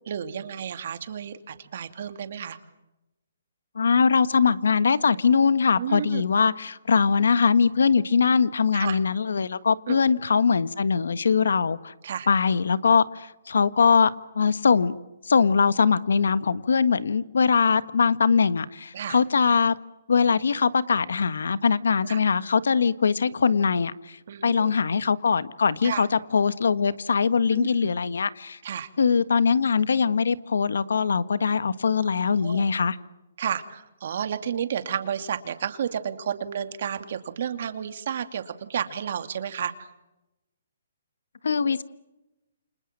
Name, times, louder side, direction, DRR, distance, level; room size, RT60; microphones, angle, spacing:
voice 1, 0.1-2.6 5.8-6.2 8.7-9.0 9.9-10.0 12.0-12.3 18.9-19.2 22.0-22.2 24.3-24.7 25.8-26.1 27.5-27.9 28.6-28.9 32.4-32.6 33.4-39.9, right 8 dB, 50° right, 9 dB, 2.5 m, -31 dB
voice 2, 3.7-11.9 12.3-15.0 15.3-19.7 20.1-24.2 24.4-28.6 29.0-33.0 41.4-41.8, left 5 dB, 85° left, 15 dB, 1.5 m, -22 dB
29.5 x 27.0 x 7.5 m, 0.97 s
hypercardioid pair, 170°, 0 cm